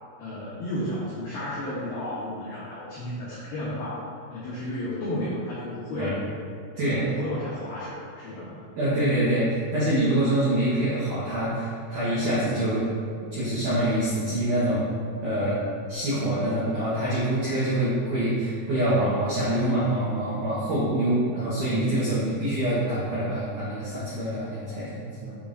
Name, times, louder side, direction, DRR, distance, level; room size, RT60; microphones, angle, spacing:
voice 1, 0.2-6.2 6.8-8.6, left 1 dB, 90° left, -7 dB, 2.2 m, -33 dB
voice 2, 8.7-12.8 13.3-14.8 15.2-15.6 15.9-25.4, right 1 dB, 85° right, -10 dB, 1.7 m, -25 dB
7.5 x 7.2 x 2.6 m, 2.5 s
omnidirectional pair, 5.9 m